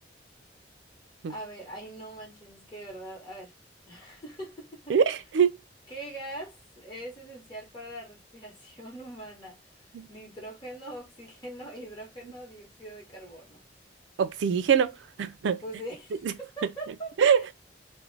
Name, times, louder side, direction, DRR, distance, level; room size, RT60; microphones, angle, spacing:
voice 1, 1.3-3.5 3.8-5.0 5.9-9.6 10.1-13.6 15.6-17.5, right 1 dB, 25° left, 1.0 m, -42 dB
voice 2, 4.9-5.5 9.9-10.1 14.2-14.9 15.2-15.6 17.2-17.5, right 7 dB, 85° right, 0.3 m, -23 dB
2.4 x 2.1 x 3.2 m
head